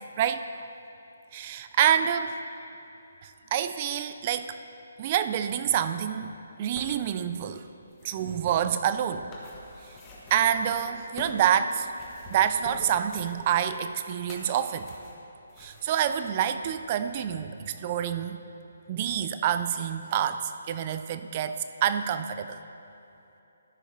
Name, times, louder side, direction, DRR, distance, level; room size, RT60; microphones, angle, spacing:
voice 1, 0.2-0.7 1.3-2.3 3.2-4.5 5.0-6.3 6.6-7.6 8.0-9.3 10.3-11.9 12.3-14.9 15.6-18.4 18.9-22.6, right 9 dB, 30° right, 10 dB, 0.3 m, -27 dB
sound 1, 6.3-11.4 11.8-16.3 17.1-17.2, left 2 dB, 15° left, 1.2 m, -46 dB
13.5 x 5.0 x 3.4 m, 3.0 s
hypercardioid pair, 165°, 0 cm